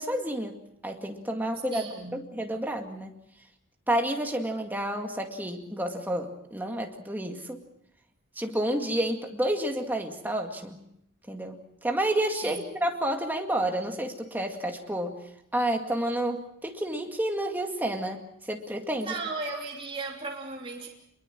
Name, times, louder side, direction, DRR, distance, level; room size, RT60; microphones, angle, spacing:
voice 1, 0.0-3.2 3.9-7.6 8.4-10.8 11.3-15.2 15.5-19.1, right 1 dB, 10° right, 3 dB, 2.2 m, -30 dB
voice 2, 1.7-2.3 12.4-12.7 19.0-20.9, right 3 dB, 25° right, -2 dB, 3.2 m, -36 dB
26.0 x 22.5 x 6.2 m, 0.75 s
head